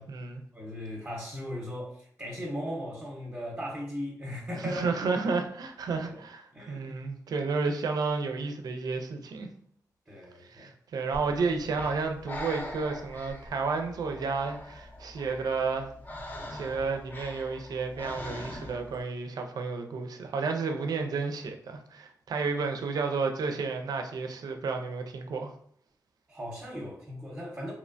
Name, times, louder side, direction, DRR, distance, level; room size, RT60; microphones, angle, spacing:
voice 1, 0.0-0.4 4.6-9.5 10.5-15.9 16.5-25.5, right 4 dB, 75° right, 4 dB, 0.4 m, -31 dB
voice 2, 0.5-4.9 5.2-5.4 6.1-6.2 6.5-7.0 10.1-10.7 26.3-27.7, equal, 20° right, -2 dB, 0.7 m, -38 dB
Breathing, 11.1-19.0, left 1 dB, 30° left, 0.5 m, -42 dB
2.8 x 2.1 x 2.5 m, 0.63 s
cardioid pair, 65°, 7 cm